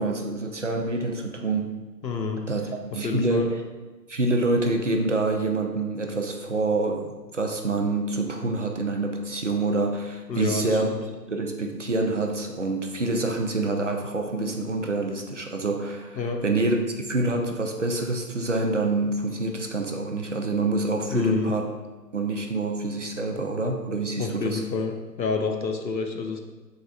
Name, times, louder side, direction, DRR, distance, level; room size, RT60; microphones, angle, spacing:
voice 1, 0.0-1.7 2.5-3.6 4.1-10.9 11.3-21.7 22.1-24.6, right 2 dB, 50° right, 3 dB, 0.5 m, -26 dB
voice 2, 2.0-2.4 2.9-3.5 10.3-11.0 16.2-16.4 21.1-21.5 24.2-26.4, left 4 dB, 85° left, 4 dB, 0.8 m, -28 dB
3.9 x 3.3 x 3.8 m, 1.3 s
figure-of-eight pair, 150°, 50 cm